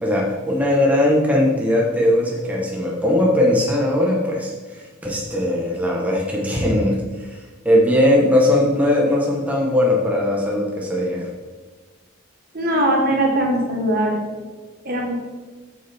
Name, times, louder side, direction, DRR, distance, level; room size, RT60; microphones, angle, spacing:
voice 1, 0.0-4.5 5.0-7.0 7.6-11.3, left 1 dB, 5° right, -3 dB, 1.2 m, -19 dB
voice 2, 12.5-14.2 14.8-15.1, right 1 dB, 45° right, 0 dB, 1.4 m, -20 dB
8.8 x 6.9 x 3.5 m, 1.3 s
head